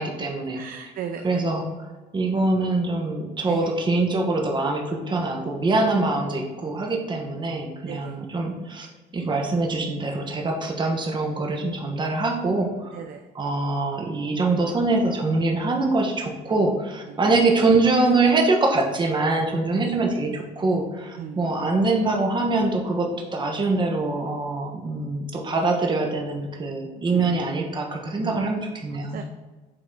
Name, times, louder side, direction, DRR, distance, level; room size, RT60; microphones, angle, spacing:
voice 1, 0.0-0.6 1.2-1.6 2.1-8.9 9.1-13.0 13.3-29.2, right 3 dB, 25° right, 1 dB, 1.4 m, -24 dB
voice 2, 0.5-1.4 3.5-3.7 7.9-8.1 12.9-13.2 17.1-17.2 19.7-20.0 21.2-21.5 27.1-27.4 28.2-28.6 28.9-29.2, right 8 dB, 60° right, 6 dB, 0.6 m, -36 dB
7.9 x 4.1 x 4.1 m, 1.2 s
cardioid pair, 110°, 17 cm